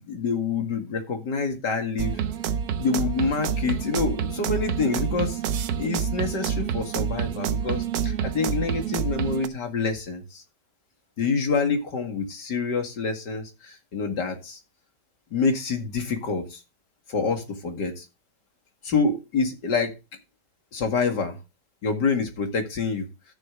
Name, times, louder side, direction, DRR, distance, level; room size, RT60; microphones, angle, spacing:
voice 1, 0.0-2.2 2.8-5.4 5.8-10.4 11.2-14.6 15.3-16.6 17.1-18.1 18.8-19.9 20.7-21.4 21.8-23.1, left 4 dB, 85° left, 4 dB, 2.7 m, -27 dB
sound 1, 2.0-9.5, right 8 dB, 65° right, 1.2 m, -28 dB
14.0 x 6.9 x 3.8 m, 0.28 s
omnidirectional pair, 1.8 m